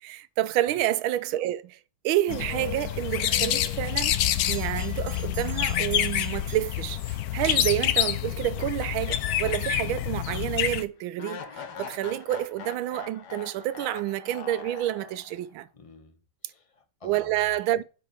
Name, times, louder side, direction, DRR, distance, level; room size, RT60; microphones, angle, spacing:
voice 1, 0.0-1.8 2.0-4.2 4.5-11.4 11.8-15.7 17.0-17.8, right 14 dB, 85° right, 1.4 m, -29 dB
sound 1, 2.3-10.8, left 12 dB, 75° left, 0.8 m, -27 dB
Bell, 3.3-7.4, right 5 dB, 50° right, 2.1 m, -47 dB
sound 2, 8.6-9.9 10.2-10.3 11.2-15.5, left 6 dB, 60° left, 1.6 m, -42 dB
voice 2, 15.7-17.6, left 4 dB, 45° left, 0.4 m, -50 dB
9.5 x 5.4 x 4.9 m
omnidirectional pair, 2.2 m